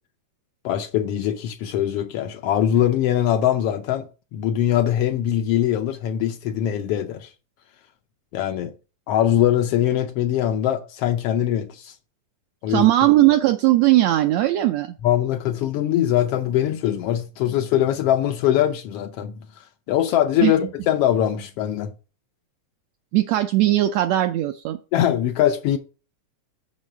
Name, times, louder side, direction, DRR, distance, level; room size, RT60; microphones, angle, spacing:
voice 1, 0.6-4.1 4.3-7.3 8.3-8.7 9.1-11.9 12.6-12.9 15.0-19.3 19.9-21.9 24.9-25.8, left 11 dB, 85° left, 1.3 m, -22 dB
voice 2, 12.7-14.9 20.4-20.5 23.1-24.8, right 15 dB, 80° right, 1.7 m, -18 dB
6.4 x 5.5 x 7.1 m
omnidirectional pair, 3.4 m